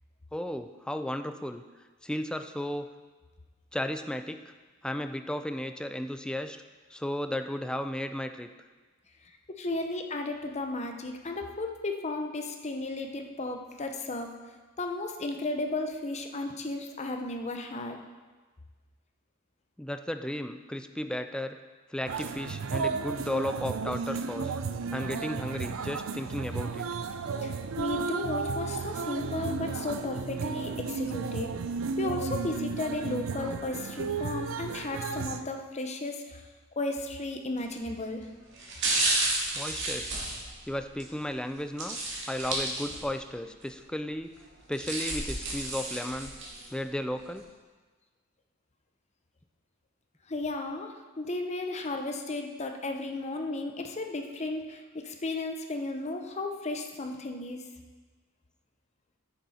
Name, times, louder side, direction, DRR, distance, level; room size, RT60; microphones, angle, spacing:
voice 1, 0.3-1.6 2.0-2.9 3.7-4.5 4.8-6.6 6.9-8.5 19.8-21.6 21.9-24.6 24.9-26.9 39.5-40.2 40.7-42.0 42.3-44.3 44.7-46.3 46.7-47.5, left 1 dB, 5° left, 8 dB, 0.4 m, -34 dB
voice 2, 9.5-14.3 14.8-18.0 27.2-31.5 32.0-36.5 36.8-38.3 50.3-57.7, left 2 dB, 35° left, 4 dB, 0.8 m, -34 dB
sound 1, 22.1-35.4, right 5 dB, 90° right, 0.5 m, -33 dB
sound 2, 37.6-37.9 38.5-41.1 41.8-43.2 43.6-43.7 44.5-46.7 47.2-47.3, right 2 dB, 65° right, 2.2 m, -31 dB
9.7 x 6.9 x 4.2 m, 1.3 s
head